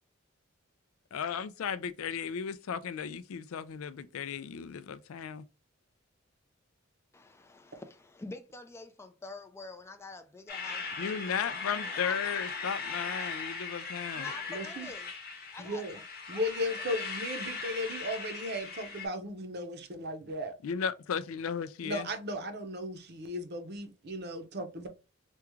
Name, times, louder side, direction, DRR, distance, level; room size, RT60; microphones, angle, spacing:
voice 1, 1.1-5.4 11.0-14.3 20.6-22.1, left 7 dB, 75° left, 0.4 m, -35 dB
voice 2, 7.1-11.2 12.0-12.3 14.2-15.1 15.5-16.0 16.3-16.8, left 3 dB, 10° left, 0.4 m, -47 dB
sound 1, 10.5-19.1, left 4 dB, 45° left, 0.9 m, -39 dB
voice 3, 14.5-14.9 15.6-16.0 16.3-20.5 21.8-24.9, left 1 dB, 50° right, 0.7 m, -36 dB
3.5 x 2.3 x 3.0 m
head